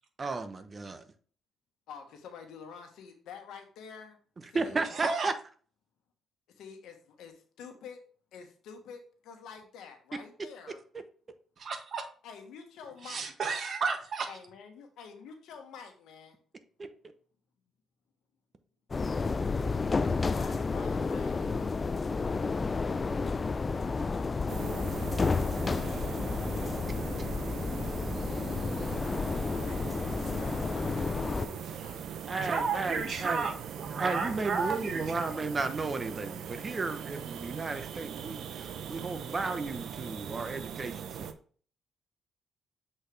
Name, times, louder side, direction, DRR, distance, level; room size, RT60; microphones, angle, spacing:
voice 1, 0.2-1.0 4.5-5.3 16.8-16.9 32.3-33.4 34.0-41.3, right 3 dB, 30° right, 9 dB, 1.0 m, -34 dB
voice 2, 1.9-4.2 4.5-4.8 6.6-8.0 8.3-10.8 12.2-13.3 14.3-16.4 20.1-21.7 29.4-33.1, left 6 dB, 85° left, 5 dB, 1.3 m, -48 dB
voice 3, 4.9-5.3 11.6-12.0 13.0-14.3 32.3-35.3, right 4 dB, 50° right, 5 dB, 1.5 m, -33 dB
sound 1, 18.9-31.5, left 4 dB, 30° left, 0.4 m, -31 dB
sound 2, 24.5-41.3, right 8 dB, 70° right, 0.7 m, -40 dB
7.7 x 4.4 x 3.3 m, 0.43 s
cardioid pair, 90°, 0 cm